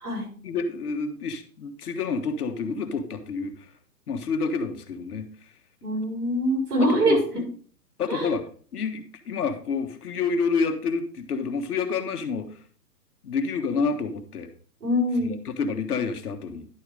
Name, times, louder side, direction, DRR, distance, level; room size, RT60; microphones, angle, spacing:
voice 1, 0.4-3.5 4.1-5.3 6.8-7.4 8.0-12.5 13.2-14.5 15.2-16.7, left 4 dB, 65° left, 7 dB, 1.5 m, -28 dB
voice 2, 5.8-7.2 8.1-8.3 14.8-15.4, equal, 70° right, 0 dB, 5.6 m, -24 dB
11.0 x 4.8 x 5.1 m, 0.43 s
hypercardioid pair, 140°, 48 cm